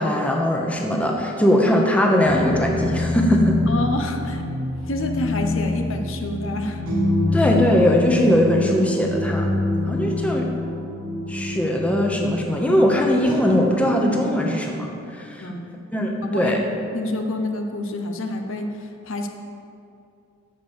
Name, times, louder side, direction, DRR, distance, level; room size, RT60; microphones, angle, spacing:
voice 1, 0.0-3.6 7.3-9.6 9.9-10.5 11.3-14.9 15.2-15.5 15.9-16.6, equal, 5° left, 0 dB, 1.0 m, -20 dB
sound 1, 2.3-14.8, left 2 dB, 90° right, 3.0 m, -26 dB
voice 2, 3.7-4.4 4.8-6.8 7.2-7.4 15.4-15.8 16.2-19.3, left 1 dB, 65° left, 4 dB, 0.9 m, -28 dB
13.0 x 5.2 x 7.2 m, 2.5 s
head